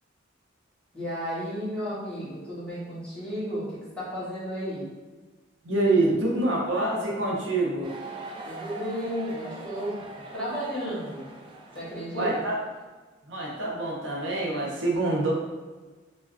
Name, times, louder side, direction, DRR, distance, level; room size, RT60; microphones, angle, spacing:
voice 1, 0.9-4.8 8.4-9.9 10.3-11.2 11.7-12.3, equal, 5° left, -10 dB, 1.2 m, -33 dB
voice 2, 5.6-8.0 12.1-12.6 13.3-15.3, right 2 dB, 75° right, -2 dB, 0.7 m, -26 dB
sound 1, 7.8-12.7, right 2 dB, 25° right, 0.3 m, -42 dB
4.7 x 2.3 x 2.5 m, 1.3 s
head